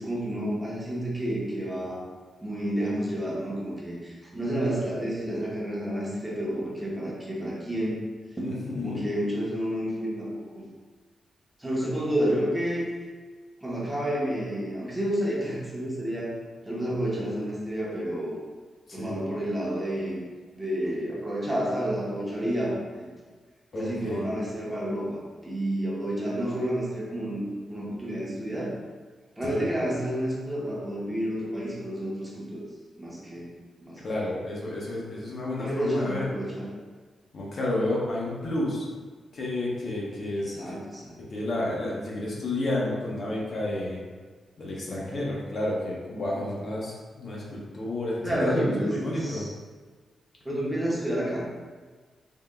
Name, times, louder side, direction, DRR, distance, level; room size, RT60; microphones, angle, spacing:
voice 1, 0.0-2.0 2.4-8.0 8.3-8.4 8.8-10.6 11.6-12.9 13.6-16.3 16.6-18.3 18.9-20.2 20.5-23.1 23.7-28.7 29.4-32.6 33.0-33.5 33.8-34.3 35.6-36.7 40.4-41.2 44.8-45.3 48.2-49.5 50.4-51.5, right 1 dB, 10° right, -6 dB, 1.0 m, -30 dB
voice 2, 8.4-9.1 18.9-19.2 23.7-24.3 29.5-29.7 34.0-36.2 37.3-38.9 39.3-40.8 41.3-44.0 44.6-49.5, left 1 dB, 55° left, -4 dB, 0.8 m, -31 dB
3.6 x 3.4 x 2.2 m, 1.4 s
cardioid pair, 105°, 0 cm